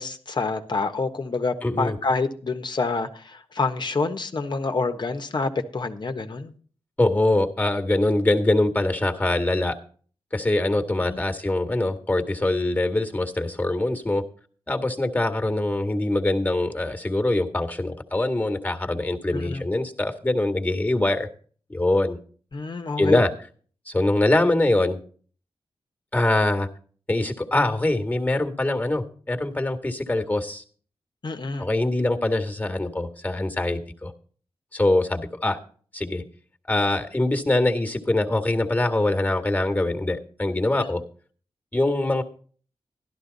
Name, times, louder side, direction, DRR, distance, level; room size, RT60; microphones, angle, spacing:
voice 1, 0.0-6.5 11.1-11.2 19.3-19.6 22.5-23.2 31.2-31.7, left 3 dB, 50° left, 7 dB, 1.4 m, -27 dB
voice 2, 1.6-2.0 7.0-9.8 10.3-14.2 14.7-21.3 21.7-22.2 23.0-23.3 23.9-25.0 26.1-26.7 27.1-30.6 31.6-34.1 34.7-35.6 35.9-36.2 36.7-41.0 41.7-42.2, left 2 dB, 15° left, 6 dB, 1.9 m, -23 dB
12.5 x 11.5 x 4.1 m, 0.43 s
cardioid pair, 65°, 10 cm